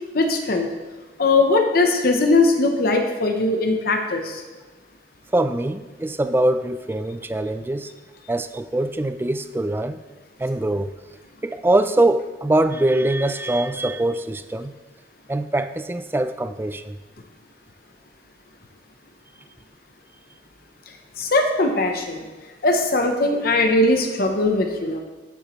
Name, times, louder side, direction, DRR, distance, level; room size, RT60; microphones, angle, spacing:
voice 1, 0.1-0.7 1.2-4.4 21.2-22.2 22.6-25.0, left 2 dB, 55° left, 4 dB, 0.8 m, -20 dB
voice 2, 5.3-7.9 8.3-10.0 10.4-11.0 11.4-14.7 15.3-17.0, right 1 dB, 10° right, 11 dB, 0.3 m, -23 dB
9.8 x 9.8 x 3.1 m, 1.2 s
head